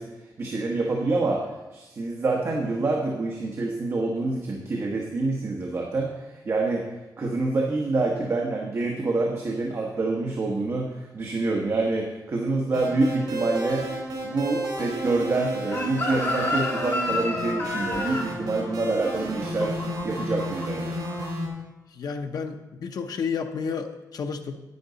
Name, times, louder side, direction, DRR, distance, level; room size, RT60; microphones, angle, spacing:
voice 1, 0.0-6.9 7.2-13.9 14.2-21.0, right 3 dB, 40° right, -1 dB, 1.1 m, -27 dB
sound 1, 12.7-21.5, right 1 dB, 75° right, 3.7 m, -32 dB
Chicken rooster, 15.7-20.7 21.0-21.3, left 2 dB, 35° left, 1.7 m, -30 dB
voice 2, 21.9-24.6, left 6 dB, 60° left, 5 dB, 0.7 m, -31 dB
10.5 x 9.5 x 3.9 m, 1.1 s
wide cardioid pair, 170°, 7 cm